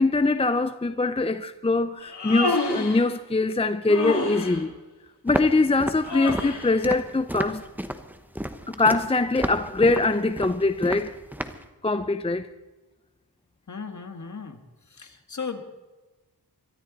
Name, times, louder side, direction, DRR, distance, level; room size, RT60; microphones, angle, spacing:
voice 1, 0.0-4.7 5.2-7.6 8.7-11.2 11.8-12.5, left 3 dB, 15° left, 0.5 m, -23 dB
Human voice, 2.0-3.0 3.9-4.6 6.0-6.7, left 3 dB, 90° left, 3.2 m, -28 dB
Walk footsteps, 5.3-11.7, equal, 5° right, 1.0 m, -32 dB
voice 2, 13.7-14.6 14.9-15.6, left 5 dB, 45° left, 1.8 m, -36 dB
23.0 x 14.0 x 4.0 m
wide cardioid pair, 95°, 40 cm